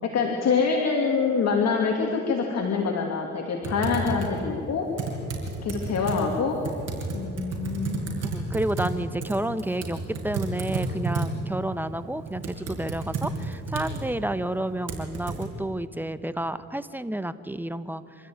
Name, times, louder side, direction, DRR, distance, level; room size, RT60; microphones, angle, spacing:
voice 1, 0.0-4.9 5.6-6.6 7.1-8.2, left 5 dB, 60° left, 1 dB, 2.4 m, -25 dB
Typing, 3.6-15.4, right 3 dB, 55° right, 5.4 m, -33 dB
voice 2, 8.3-18.0, right 1 dB, 5° right, 13 dB, 0.9 m, -30 dB
26.0 x 13.5 x 9.4 m, 2.5 s
cardioid pair, 90°, 30 cm